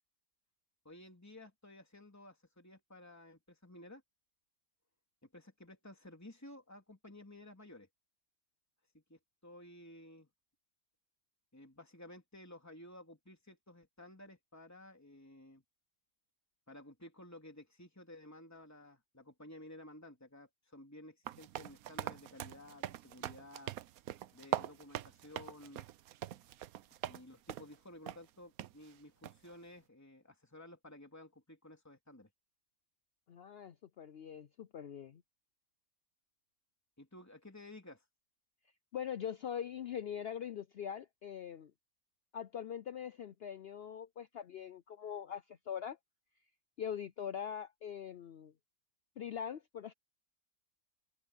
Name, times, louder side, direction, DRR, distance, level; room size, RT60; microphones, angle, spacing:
voice 1, 0.8-4.0 5.2-7.9 8.9-10.3 11.5-15.6 16.7-23.7 24.3-25.9 27.0-32.3 37.0-38.1, left 1 dB, 10° left, 3.3 m, -54 dB
sound 1, 21.3-27.2 27.5-27.8 28.1-28.2 28.6-28.7 29.2-29.5, right 12 dB, 80° right, 1.1 m, -42 dB
voice 2, 33.3-35.2 38.9-41.7 42.3-46.0 46.8-48.5 49.2-49.9, left 8 dB, 60° left, 0.7 m, -42 dB
open air
omnidirectional pair, 1.5 m